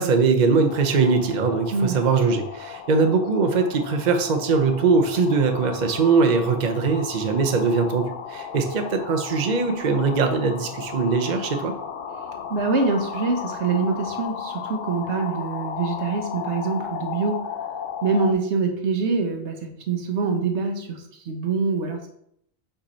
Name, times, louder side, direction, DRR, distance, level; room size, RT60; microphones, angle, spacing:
voice 1, 0.0-11.7, right 4 dB, 45° right, 4 dB, 0.8 m, -21 dB
sound 1, 0.7-18.3, left 7 dB, 60° left, 0.6 m, -35 dB
voice 2, 12.5-17.4 18.0-22.1, right 4 dB, 85° right, 4 dB, 1.2 m, -25 dB
5.1 x 4.9 x 4.2 m, 0.72 s
omnidirectional pair, 1.1 m